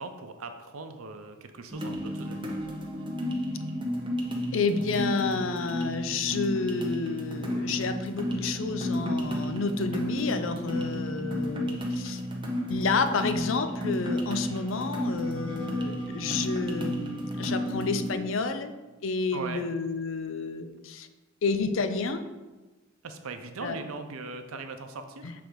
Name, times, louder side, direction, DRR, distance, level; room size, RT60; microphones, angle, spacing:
voice 1, 0.0-2.5 19.3-19.7 23.0-25.3, right 3 dB, 80° right, 8 dB, 0.6 m, -39 dB
sound 1, 1.7-18.2, equal, 25° right, 0.7 m, -32 dB
voice 2, 4.5-12.2 12.7-18.7 19.0-21.1 21.4-22.2 23.6-23.8 25.2-25.3, left 4 dB, 65° left, 9 dB, 0.5 m, -30 dB
6.2 x 3.4 x 5.1 m, 1.2 s
head